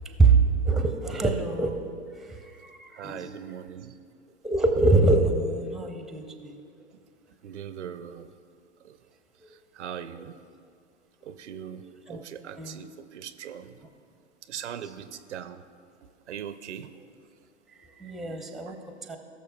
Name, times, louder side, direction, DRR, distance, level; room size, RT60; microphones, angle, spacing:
voice 1, 0.0-1.9 2.1-3.4 4.4-6.6 9.4-9.6 10.1-10.2 11.2-11.3 12.1-12.2 12.6-12.8 14.8-14.9 17.0-17.1 17.7-19.2, right 3 dB, ahead, 5 dB, 0.5 m, -25 dB
voice 2, 2.9-4.0 7.4-8.3 8.8-9.0 9.7-10.4 11.2-11.8 12.1-13.7 14.5-15.6 16.3-16.9, right 9 dB, 75° right, 12 dB, 0.5 m, -40 dB
18.0 x 6.5 x 2.2 m, 2.3 s
figure-of-eight pair, 100°, 36 cm